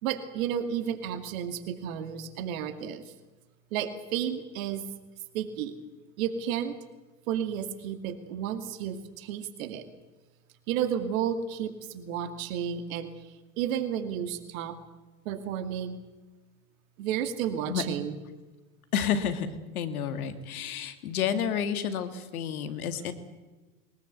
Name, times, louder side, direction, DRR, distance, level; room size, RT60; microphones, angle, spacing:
voice 1, 0.0-3.1 3.7-4.8 5.3-5.7 6.2-6.7 7.3-9.9 10.7-13.1 13.6-14.8 15.3-16.0 17.0-18.1, right 9 dB, 65° right, 10 dB, 2.4 m, -32 dB
voice 2, 18.9-23.1, left 8 dB, 75° left, 10 dB, 2.4 m, -30 dB
22.5 x 20.5 x 8.2 m, 1.2 s
hypercardioid pair, 80°, 44 cm